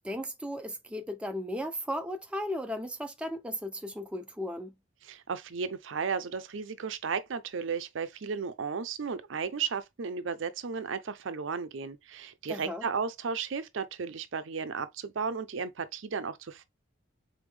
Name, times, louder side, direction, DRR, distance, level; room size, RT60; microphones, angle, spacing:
voice 1, 0.0-4.7 12.5-12.9, equal, 5° right, 0.4 m, -36 dB
voice 2, 5.0-16.6, right 5 dB, 65° right, 0.5 m, -34 dB
3.9 x 3.5 x 3.3 m
head